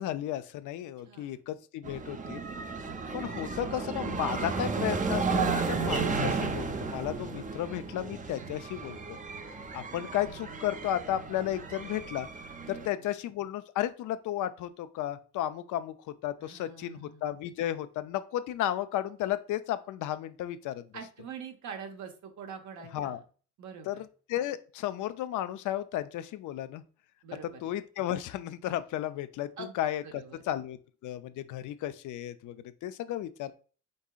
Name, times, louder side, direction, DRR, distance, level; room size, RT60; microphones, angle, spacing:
voice 1, 0.0-2.4 3.1-9.2 9.7-12.3 12.7-20.8 22.9-23.2 23.9-26.8 27.6-33.5, left 12 dB, 80° left, 11 dB, 0.5 m, -34 dB
voice 2, 1.1-1.4 12.7-13.1 16.4-17.3 20.9-23.2 23.6-24.0 27.2-27.6 29.6-30.4, right 6 dB, 70° right, 4 dB, 1.0 m, -45 dB
sound 1, 1.8-12.9, right 4 dB, 25° right, 0.5 m, -33 dB
5.3 x 3.6 x 2.4 m, 0.38 s
cardioid pair, 90°, 30 cm